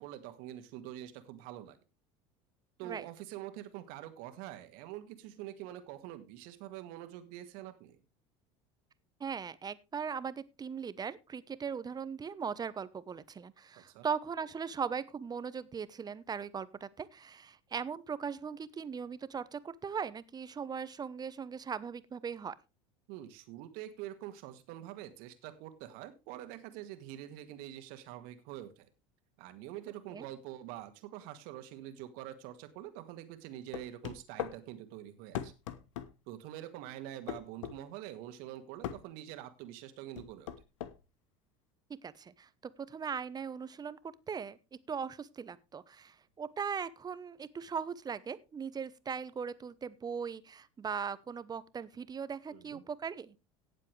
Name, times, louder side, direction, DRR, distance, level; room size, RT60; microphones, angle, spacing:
voice 1, 0.0-1.8 2.8-8.0 13.9-14.1 23.1-28.9 29.4-35.5 36.3-40.5 52.5-52.8, right 13 dB, 65° right, 9 dB, 2.0 m, -45 dB
voice 2, 9.2-22.5 30.1-30.2 42.0-42.5 42.9-44.0 44.3-53.3, right 6 dB, 25° right, 17 dB, 1.0 m, -39 dB
sound 1, 33.7-34.6 35.3-36.1 37.3-37.8 38.8-39.0 40.2-41.0, left 11 dB, 80° left, 1.1 m, -38 dB
17.5 x 7.5 x 3.3 m, 0.27 s
hypercardioid pair, 90°, 16 cm